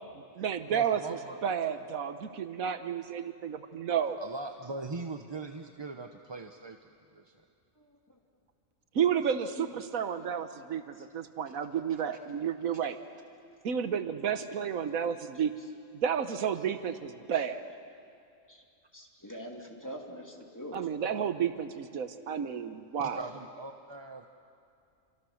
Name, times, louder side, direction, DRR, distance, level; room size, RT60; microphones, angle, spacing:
voice 1, 0.1-4.2 8.9-13.0 13.6-15.5 15.9-17.6 20.7-23.2, right 8 dB, 85° right, 9 dB, 1.5 m, -31 dB
voice 2, 0.7-1.4 4.2-6.8 7.1-7.3 11.5-11.6 11.9-12.0 23.0-24.3, right 3 dB, 25° right, 5 dB, 0.7 m, -41 dB
voice 3, 9.3-9.8 10.2-10.4 11.0-11.1 18.5-18.6 18.9-20.9, equal, 15° left, 0 dB, 2.6 m, -44 dB
28.0 x 25.5 x 6.5 m, 2.4 s
omnidirectional pair, 1.4 m